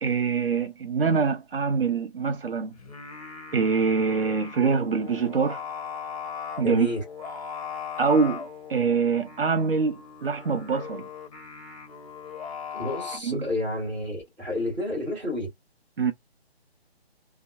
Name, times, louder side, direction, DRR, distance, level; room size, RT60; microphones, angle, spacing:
voice 1, 0.0-2.7 3.5-5.6 6.6-6.9 8.0-11.1 13.2-13.5 16.0-16.1, right 5 dB, 60° right, 0.6 m, -24 dB
Singing, 2.7-13.2, left 6 dB, 35° left, 0.8 m, -39 dB
voice 2, 6.6-7.0 12.7-15.5, left 1 dB, 5° right, 1.4 m, -30 dB
2.7 x 2.1 x 2.3 m
figure-of-eight pair, 145°, 32 cm